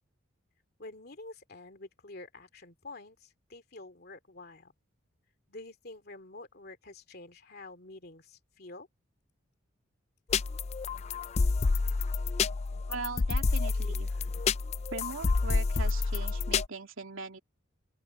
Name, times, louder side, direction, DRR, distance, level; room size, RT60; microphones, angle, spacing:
voice 1, 0.8-4.7 5.5-8.9, left 2 dB, 50° left, 2.6 m, -48 dB
sound 1, 10.3-16.7, left 4 dB, 30° left, 0.4 m, -29 dB
voice 2, 12.9-14.3 14.9-17.4, right 4 dB, 85° right, 3.0 m, -40 dB
open air
head